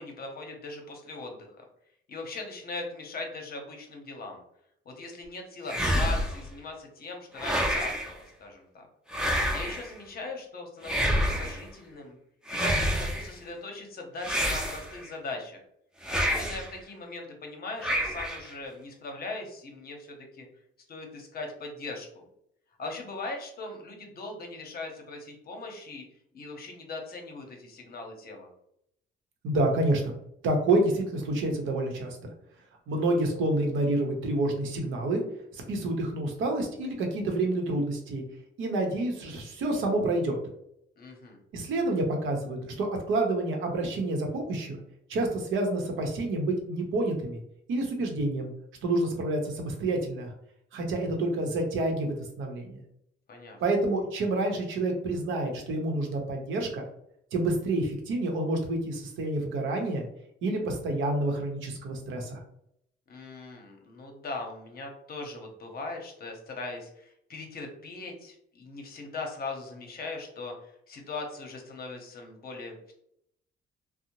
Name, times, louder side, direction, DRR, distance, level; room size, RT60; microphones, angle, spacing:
voice 1, 0.0-1.5 2.1-4.4 4.9-8.9 9.5-12.2 12.5-15.6 16.1-20.5 20.9-22.2 22.8-26.0 26.3-28.5 41.0-41.4 53.3-53.6 63.1-72.9, left 3 dB, 50° left, 2 dB, 0.7 m, -40 dB
sound 1, 5.7-6.5 7.4-8.1 9.1-9.9 10.8-11.6 12.5-13.3 14.2-15.1 16.0-16.7 17.8-18.5, equal, 5° right, 0.5 m, -28 dB
voice 2, 29.4-30.1 30.4-32.2 32.9-35.2 35.5-38.2 38.6-40.4 41.5-44.8 45.1-47.4 47.7-48.5 48.8-50.3 50.7-52.8 53.6-56.8 57.3-60.1 60.4-62.4, right 2 dB, 80° right, 2 dB, 0.7 m, -28 dB
2.6 x 2.0 x 2.9 m, 0.73 s
cardioid pair, 90°, 20 cm